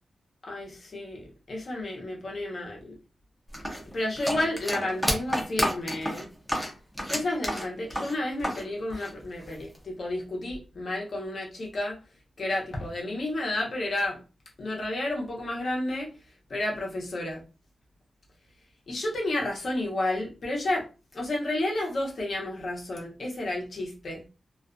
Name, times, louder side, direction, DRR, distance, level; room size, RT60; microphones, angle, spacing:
voice 1, 0.4-3.0 3.9-6.3 7.0-12.0 12.4-14.2 14.6-16.1 16.5-17.4 18.9-20.9 21.1-24.2, left 1 dB, 50° left, -1 dB, 0.8 m, -31 dB
sound 1, 3.5-8.6 8.9-9.8, equal, ahead, 0.5 m, -30 dB
2.4 x 2.2 x 2.4 m, 0.32 s
wide cardioid pair, 160°, 0 cm